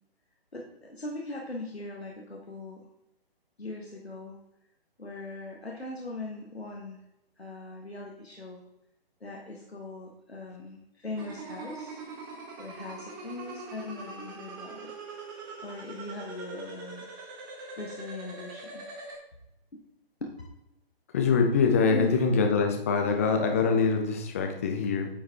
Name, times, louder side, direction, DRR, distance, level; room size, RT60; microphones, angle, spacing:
voice 1, 0.5-2.9 3.6-4.4 5.0-7.0 7.4-8.6 9.2-12.0 12.6-14.9 15.6-17.1 17.8-18.8 19.7-19.8 20.2-20.3 21.8-22.4, left 2 dB, 85° left, -1 dB, 1.3 m, -40 dB
sound 1, 11.2-19.2, right 3 dB, 20° right, 1.1 m, -42 dB
voice 2, 21.1-25.1, left 5 dB, 15° left, 4 dB, 0.5 m, -24 dB
9.3 x 4.7 x 3.5 m, 0.89 s
figure-of-eight pair, 140°, 31 cm